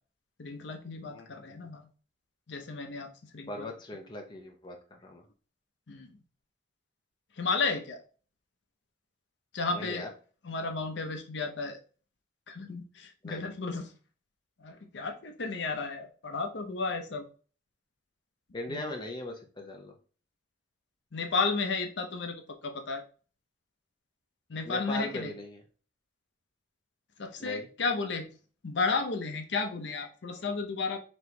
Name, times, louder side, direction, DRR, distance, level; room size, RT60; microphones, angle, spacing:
voice 1, 0.4-1.9 2.5-3.7 5.9-6.1 7.4-8.0 9.5-10.1 10.4-11.8 12.5-13.9 14.6-17.2 18.7-18.8 21.1-23.0 24.5-25.3 27.2-28.3 28.6-31.0, left 4 dB, 75° left, 6 dB, 0.7 m, -33 dB
voice 2, 1.1-1.7 3.5-5.2 9.7-10.1 13.2-13.5 18.5-19.9 24.6-25.6 27.4-27.7, left 1 dB, 25° left, 2 dB, 0.7 m, -39 dB
4.3 x 2.9 x 3.2 m, 0.38 s
head